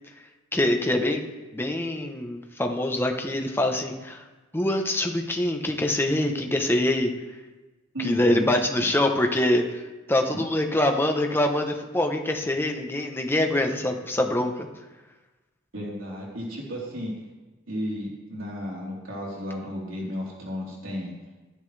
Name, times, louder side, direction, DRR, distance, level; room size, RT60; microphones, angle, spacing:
voice 1, 0.5-1.2 1.5-4.2 4.5-7.1 8.0-9.8 10.1-14.7, left 1 dB, 10° left, 4 dB, 0.9 m, -24 dB
voice 2, 7.9-8.5 15.7-17.1 17.7-21.1, equal, 90° right, -5 dB, 3.8 m, -33 dB
12.5 x 10.5 x 3.4 m, 1.2 s
head